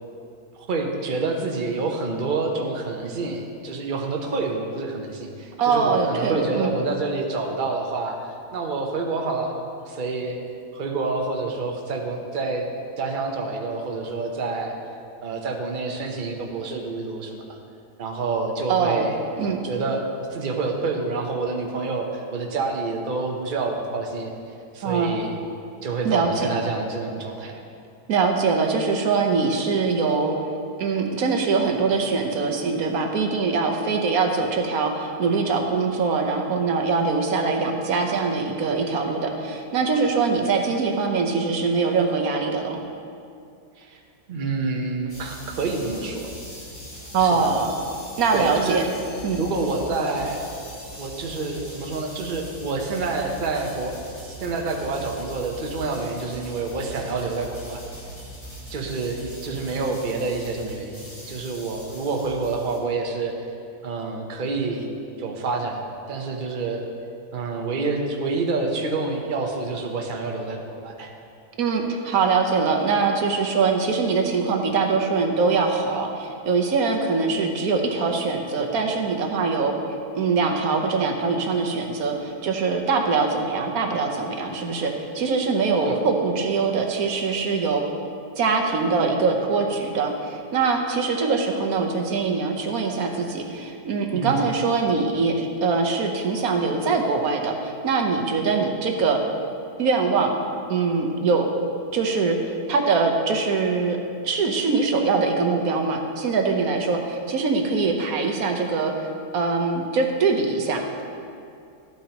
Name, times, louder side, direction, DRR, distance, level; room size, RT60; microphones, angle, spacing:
voice 1, 0.7-9.5 9.9-10.4 10.7-12.7 13.0-14.8 15.2-17.6 18.0-19.2 19.6-24.3 24.7-25.4 25.8-27.6 43.8-44.0 44.3-46.3 47.2-47.5 48.3-48.8 49.4-50.4 51.0-57.8 58.7-63.4 63.8-64.9 65.2-66.9 67.3-71.1 85.8-86.0 94.1-94.5, right 3 dB, 40° right, 2 dB, 0.9 m, -28 dB
voice 2, 5.6-6.7 18.7-19.1 19.4-19.6 24.8-25.1 26.0-26.3 28.1-30.4 30.8-42.8 47.1-47.7 48.2-48.8 49.2-49.4 71.6-79.7 80.2-87.8 88.4-99.2 99.8-100.3 100.7-101.5 101.9-102.4 102.7-104.0 104.2-111.0, right 4 dB, 65° right, 2 dB, 1.3 m, -23 dB
sound 1, 45.1-62.8, equal, 30° left, 2.2 m, -41 dB
14.0 x 8.7 x 3.0 m, 2.5 s
omnidirectional pair, 1.8 m